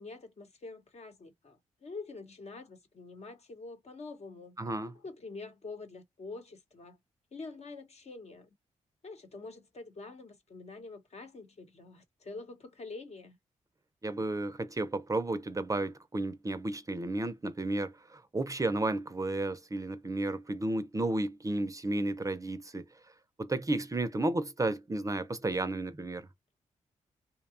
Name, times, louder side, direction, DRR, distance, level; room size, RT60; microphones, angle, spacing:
voice 1, 0.0-4.6 5.0-7.0 7.3-8.5 9.0-13.4, left 3 dB, 55° left, 0.9 m, -46 dB
voice 2, 4.6-4.9 14.0-22.9 23.4-26.3, right 2 dB, 25° right, 0.5 m, -32 dB
2.8 x 2.2 x 2.4 m
cardioid pair, 55°, 13 cm